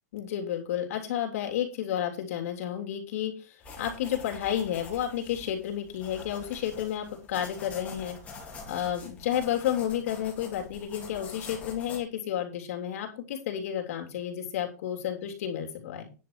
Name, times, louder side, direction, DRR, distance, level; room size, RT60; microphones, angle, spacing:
voice 1, 0.1-8.2 8.6-16.1, left 10 dB, 55° left, 3 dB, 3.3 m, -31 dB
sound 1, 3.6-12.0, left 3 dB, 15° left, 2.7 m, -45 dB
10.0 x 5.8 x 6.0 m, 0.33 s
supercardioid pair, 165°, 9 cm